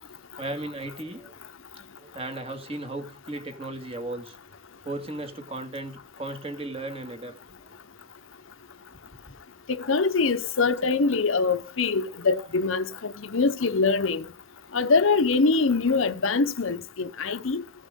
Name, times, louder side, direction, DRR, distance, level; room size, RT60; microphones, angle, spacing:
voice 1, 0.4-1.3 2.0-4.4 4.9-7.7 10.8-10.9 14.7-14.8, right 2 dB, 25° right, 2.0 m, -36 dB
voice 2, 9.8-14.3 14.7-17.6, left 4 dB, 75° left, 0.8 m, -24 dB
16.0 x 6.4 x 3.7 m
head